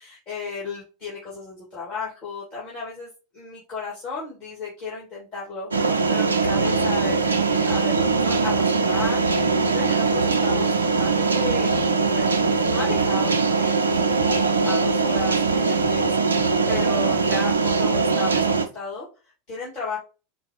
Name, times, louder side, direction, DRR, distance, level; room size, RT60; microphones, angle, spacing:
voice 1, 0.0-5.7 6.1-11.7 12.0-19.1 19.5-20.0, left 4 dB, 40° left, -7 dB, 2.0 m, -34 dB
sound 1, 5.7-18.7, right 4 dB, 80° right, 0.4 m, -21 dB
4.8 x 2.4 x 3.0 m, 0.33 s
figure-of-eight pair, 85°, 0 cm